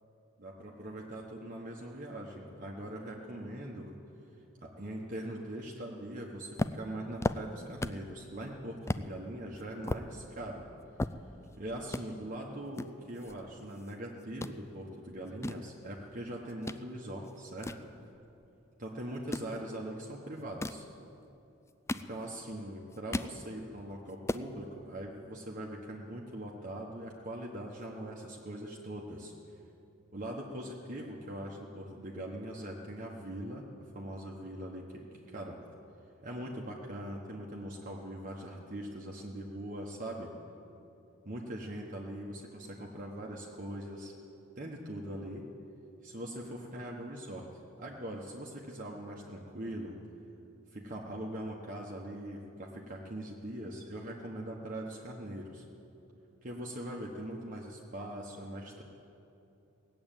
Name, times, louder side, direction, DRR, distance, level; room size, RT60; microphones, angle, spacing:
voice 1, 0.4-3.9 4.6-10.6 11.5-17.9 18.8-20.9 22.1-29.3 30.1-33.7 33.9-35.6 36.2-40.3 41.2-44.1 44.5-45.5 46.0-47.5 47.8-50.0 50.7-55.6 56.4-58.8, right 1 dB, 40° right, -2 dB, 1.2 m, -41 dB
sound 1, 6.6-8.1 8.5-8.6 8.9-9.1 9.6-11.6 11.9-12.0 12.8-13.9 14.2-14.6 15.1-16.8 17.2-18.5 19.1-19.5 20.4-20.9 21.5-22.5 22.8-23.4 23.8-23.9 24.1-24.5, left 2 dB, 15° left, 0.3 m, -36 dB
18.0 x 7.9 x 9.0 m, 2.8 s
head